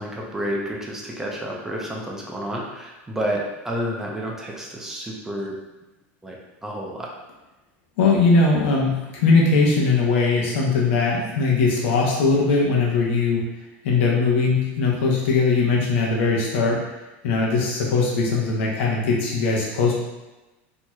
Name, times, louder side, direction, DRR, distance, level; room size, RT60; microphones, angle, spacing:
voice 1, 0.0-5.6 6.2-7.1, equal, 5° right, -2 dB, 0.5 m, -30 dB
voice 2, 8.0-13.4 13.8-16.9 17.2-19.9, left 4 dB, 75° left, -2 dB, 0.8 m, -20 dB
4.4 x 2.9 x 2.3 m, 1.1 s
supercardioid pair, 150°, 7 cm